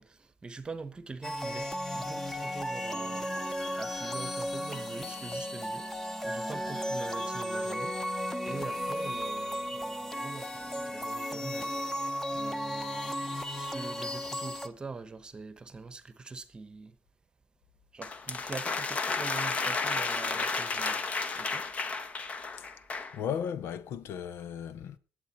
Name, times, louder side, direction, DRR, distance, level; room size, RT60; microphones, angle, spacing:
voice 1, 0.0-3.3 3.7-11.8 12.3-17.0 17.9-21.0 21.3-21.7, right 4 dB, 20° right, 1.1 m, -44 dB
sound 1, 1.2-14.7, equal, 5° left, 1.0 m, -35 dB
sound 2, 18.0-23.2, left 4 dB, 30° left, 1.1 m, -32 dB
voice 2, 23.1-25.0, left 8 dB, 65° left, 0.8 m, -35 dB
19.5 x 8.2 x 4.4 m
cardioid pair, 150°, 4 cm